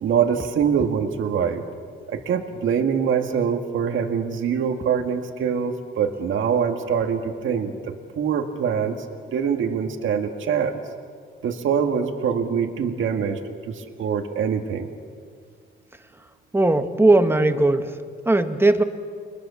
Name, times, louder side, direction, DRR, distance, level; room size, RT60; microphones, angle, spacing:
voice 1, 0.0-1.6 2.1-9.0 9.3-10.8 11.4-13.4 13.7-14.9, right 7 dB, 70° right, 5 dB, 2.0 m, -24 dB
voice 2, 16.5-17.9 18.2-18.8, right 2 dB, 10° right, 8 dB, 1.6 m, -18 dB
30.0 x 22.5 x 7.1 m, 2.1 s
cardioid pair, 105°, 21 cm